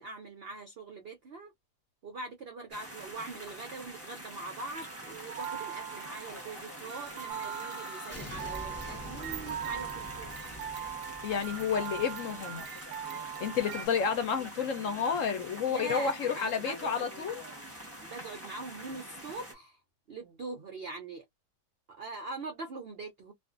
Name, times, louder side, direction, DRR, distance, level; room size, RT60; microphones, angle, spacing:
voice 1, 0.0-1.5 2.0-10.3 15.6-17.3 18.0-19.8 20.1-21.2 21.9-23.3, right 3 dB, 70° right, 0.5 m, -42 dB
sound 1, 2.7-19.5, right 1 dB, 10° right, 0.9 m, -46 dB
sound 2, 4.7-13.9, right 9 dB, 90° right, 1.2 m, -41 dB
sound 3, 7.3-13.0, left 2 dB, 15° left, 0.5 m, -47 dB
voice 2, 11.2-12.6 13.4-17.4, left 6 dB, 60° left, 0.9 m, -30 dB
2.5 x 2.4 x 2.4 m
omnidirectional pair, 1.7 m